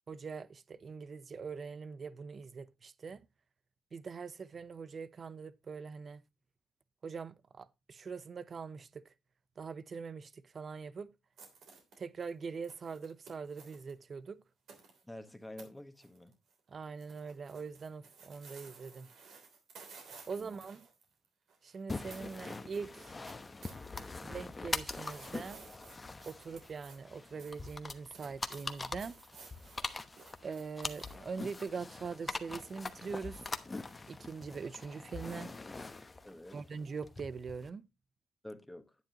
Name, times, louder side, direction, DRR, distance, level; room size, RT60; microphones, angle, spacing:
voice 1, 0.1-3.2 3.9-6.2 7.0-9.1 9.6-11.1 12.0-14.4 16.7-19.1 20.3-20.9 21.6-23.2 24.2-25.6 26.2-29.2 30.4-33.4 34.1-35.5 36.5-37.8, right 5 dB, 40° right, 0.6 m, -43 dB
sound 1, 11.4-13.9 14.7-15.0 15.6-15.7 15.9-16.6 16.8-21.8 22.1-24.1 24.3-31.2, right 5 dB, 70° right, 3.2 m, -56 dB
voice 2, 15.0-16.3 20.3-20.6 36.2-36.6 38.4-38.9, left 1 dB, 5° left, 1.4 m, -48 dB
sound 2, 21.9-37.7, left 3 dB, 25° left, 1.0 m, -43 dB
10.5 x 9.1 x 2.9 m
cardioid pair, 90°, 0 cm